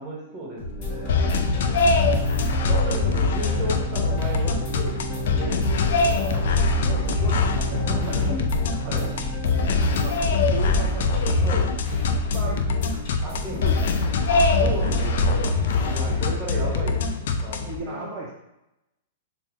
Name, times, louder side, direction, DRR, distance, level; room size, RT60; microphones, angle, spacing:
voice 1, 0.0-1.3 2.7-6.3 7.8-8.5 8.8-9.1 11.4-11.7 13.2-13.9 14.3-15.4 15.8-18.1, right 1 dB, 15° right, -4 dB, 1.1 m, -34 dB
sound 1, 0.6-15.9, equal, 45° left, 1.4 m, -35 dB
sound 2, 0.8-11.5, right 4 dB, 10° left, 0.6 m, -35 dB
sound 3, 1.1-17.8, left 3 dB, 65° left, 0.3 m, -23 dB
voice 2, 1.9-2.6 6.8-8.2 8.8-9.2 9.9-11.6 12.2-12.9 13.2-14.2 14.6-15.2 16.0-16.2 17.7-18.3, right 3 dB, 35° right, -4 dB, 0.5 m, -38 dB
3.6 x 2.1 x 2.9 m, 0.89 s
hypercardioid pair, 155°, 0 cm